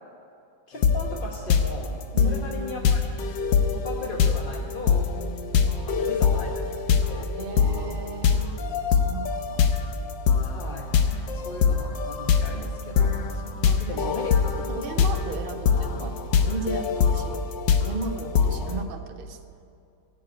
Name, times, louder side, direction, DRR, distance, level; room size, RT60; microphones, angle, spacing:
voice 1, 0.7-1.9 2.2-3.1 3.7-5.1 5.9-6.6 7.1-7.3 10.4-10.9 11.1-13.1 13.9-14.3, left 3 dB, 35° left, -1 dB, 1.1 m, -37 dB
sound 1, 0.8-1.2 1.5-18.8, left 6 dB, 80° left, 1.6 m, -23 dB
voice 2, 2.1-2.4 5.6-6.8 7.3-8.5 8.9-9.7 11.0-11.5 12.5-13.0 13.3-14.1 14.5-17.5 17.8-19.4, right 4 dB, 45° right, 5 dB, 0.8 m, -37 dB
14.5 x 8.4 x 9.3 m, 2.6 s
omnidirectional pair, 1.9 m